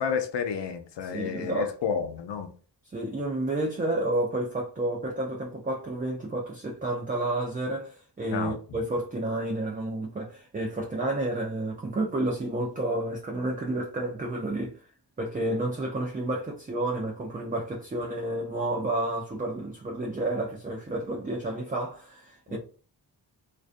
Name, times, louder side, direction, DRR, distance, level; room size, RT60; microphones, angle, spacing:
voice 1, 0.0-2.5 8.3-8.6 22.5-22.6, left 6 dB, 70° left, 0.6 m, -30 dB
voice 2, 1.0-1.7 2.9-14.8 15.2-22.6, right 1 dB, 20° right, 0.4 m, -30 dB
2.4 x 2.2 x 2.4 m
cardioid pair, 60°, 44 cm